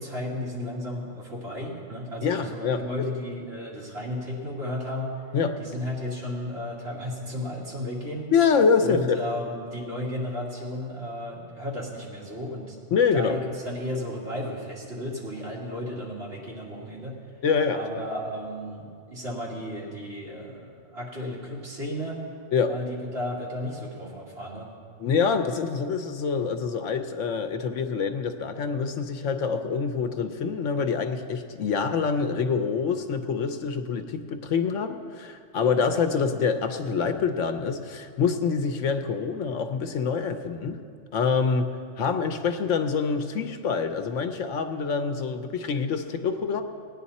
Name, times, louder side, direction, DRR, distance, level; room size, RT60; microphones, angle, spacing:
voice 1, 0.0-5.1 5.6-8.3 8.8-12.8 13.1-17.2 17.7-22.2 22.7-24.7, left 1 dB, 55° right, -5 dB, 2.6 m, -34 dB
voice 2, 2.2-3.1 5.3-5.6 8.3-9.2 12.9-13.4 17.4-18.1 22.5-22.8 25.0-40.8 41.1-41.7 42.0-46.6, left 5 dB, 80° left, 7 dB, 1.1 m, -26 dB
18.0 x 9.9 x 4.2 m, 2.3 s
omnidirectional pair, 1.3 m